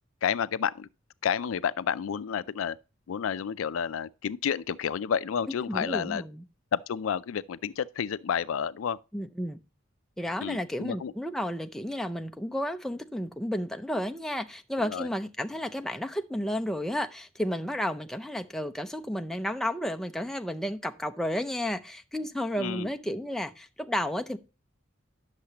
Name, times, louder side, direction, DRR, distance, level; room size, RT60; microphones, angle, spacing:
voice 1, 0.2-0.9 1.2-2.8 3.1-6.2 6.7-9.0 10.4-11.1 14.8-15.1 22.6-22.9, left 7 dB, 85° left, 0.4 m, -30 dB
voice 2, 5.7-6.4 9.1-9.6 10.2-24.4, equal, ahead, 0.5 m, -32 dB
9.9 x 6.6 x 2.9 m
head